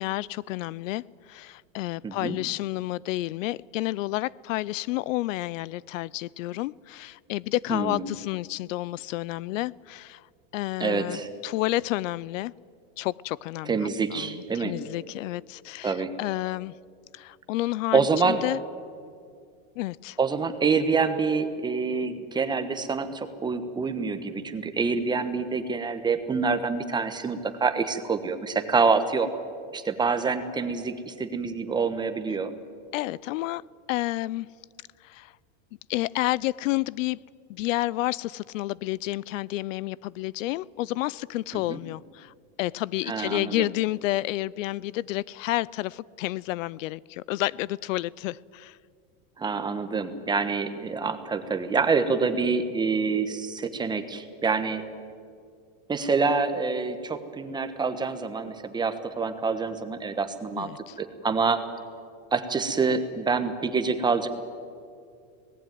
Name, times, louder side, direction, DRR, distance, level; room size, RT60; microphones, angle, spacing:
voice 1, 0.0-10.3 10.5-12.5 13.0-13.8 14.1-16.8 17.1-18.6 19.8-20.2 32.9-33.6 33.9-34.5 35.0-35.3 35.9-37.2 37.5-48.8 60.6-60.9, left 17 dB, 75° left, 23 dB, 0.6 m, -30 dB
voice 2, 2.0-2.4 7.7-8.1 10.8-11.3 13.6-14.8 15.8-16.1 17.9-18.4 20.2-29.3 29.7-32.5 41.5-41.8 43.1-43.7 49.4-54.8 55.9-60.7 61.0-61.6 62.3-64.3, right 4 dB, 10° right, 8 dB, 1.1 m, -26 dB
26.0 x 18.5 x 9.3 m, 2.3 s
supercardioid pair, 165°, 40 cm